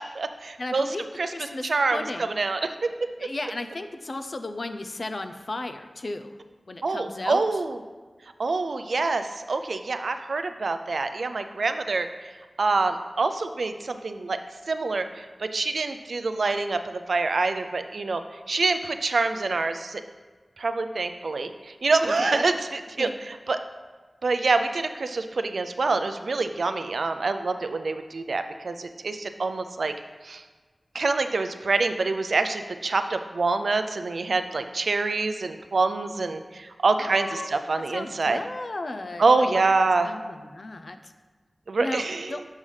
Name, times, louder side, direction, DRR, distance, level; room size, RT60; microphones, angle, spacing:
voice 1, 0.0-1.3 1.6-3.1 6.8-7.8 8.4-12.1 12.6-14.4 14.7-18.2 18.5-20.0 20.6-23.6 24.2-30.0 30.2-30.4 30.9-38.4 39.2-40.1 41.7-42.4, right 3 dB, 85° right, 9 dB, 0.4 m, -26 dB
voice 2, 0.6-2.4 3.2-6.3 6.7-7.4 22.2-22.5 23.0-23.1 37.0-37.5 37.9-39.7 40.0-41.1 41.8-42.4, left 2 dB, 65° left, 8 dB, 0.5 m, -35 dB
7.3 x 5.4 x 3.2 m, 1.3 s
wide cardioid pair, 45°, 0 cm